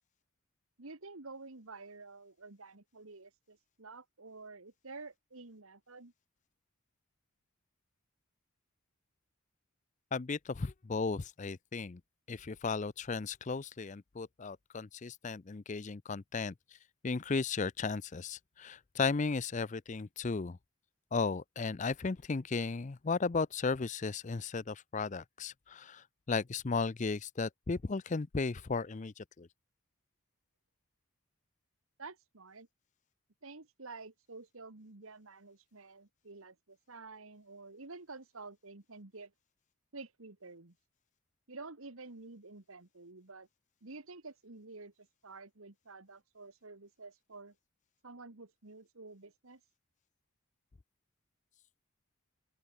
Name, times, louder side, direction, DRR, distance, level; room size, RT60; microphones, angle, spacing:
voice 1, 0.8-6.1 32.0-32.7 33.4-39.3 39.9-40.8 41.5-43.5 43.8-47.6 48.0-49.6, right 3 dB, 70° right, 1.7 m, -50 dB
voice 2, 10.1-12.0 12.3-16.5 17.0-20.6 21.1-29.5, left 4 dB, 35° left, 0.5 m, -35 dB
open air
head